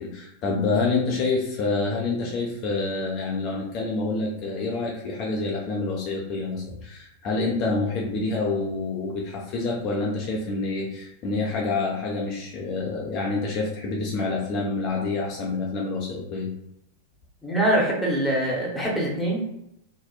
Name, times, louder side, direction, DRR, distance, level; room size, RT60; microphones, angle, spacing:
voice 1, 0.0-16.5, left 3 dB, 40° left, -2 dB, 0.4 m, -27 dB
voice 2, 17.4-19.4, right 1 dB, ahead, -5 dB, 0.8 m, -23 dB
2.7 x 2.0 x 2.3 m, 0.81 s
figure-of-eight pair, 90°, 0 cm